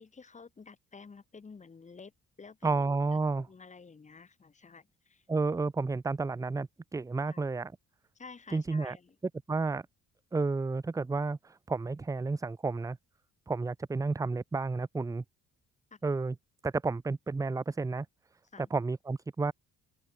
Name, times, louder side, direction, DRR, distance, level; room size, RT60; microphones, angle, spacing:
voice 1, 0.0-2.1 2.4-2.8 3.1-5.2 7.2-7.5 8.1-9.2 15.9-16.0 18.5-18.7, left 5 dB, 25° left, 1.0 m, -51 dB
voice 2, 2.6-3.5 5.3-7.7 8.5-9.0 9.5-9.8 10.3-13.0 13.5-15.2 16.0-16.3 16.6-18.1 18.6-19.5, right 3 dB, 10° right, 0.4 m, -31 dB
open air
cardioid pair, 90°, 30 cm